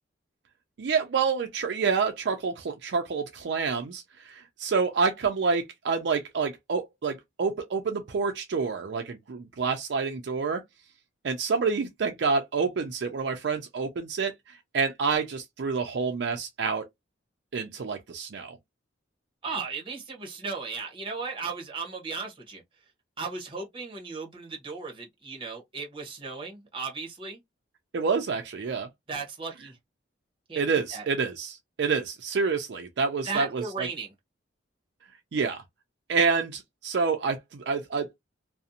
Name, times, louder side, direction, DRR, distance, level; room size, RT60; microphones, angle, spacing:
voice 1, 0.8-10.6 11.2-16.8 17.5-18.6 27.9-28.9 30.6-33.9 35.3-35.6 36.1-38.1, right 5 dB, 60° right, 0.4 m, -28 dB
voice 2, 19.4-22.6 23.2-27.4 29.1-29.8 30.5-31.0 33.2-34.1, right 4 dB, 25° right, 0.8 m, -36 dB
2.5 x 2.0 x 2.7 m
head